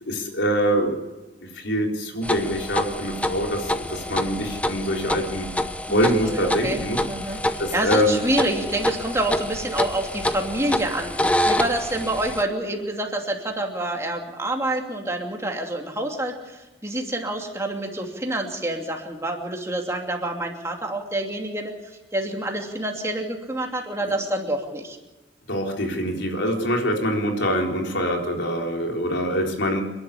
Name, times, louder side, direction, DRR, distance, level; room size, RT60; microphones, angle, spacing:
voice 1, 0.1-1.0 1.5-5.5 5.9-7.0 7.3-8.2 25.5-29.8, equal, 80° left, 1 dB, 3.9 m, -24 dB
sound 1, 2.2-12.4, left 1 dB, 5° left, 0.8 m, -27 dB
voice 2, 5.9-6.8 7.1-21.7 22.1-25.0, right 1 dB, 15° right, 2 dB, 2.8 m, -27 dB
29.5 x 11.5 x 8.4 m, 1.1 s
head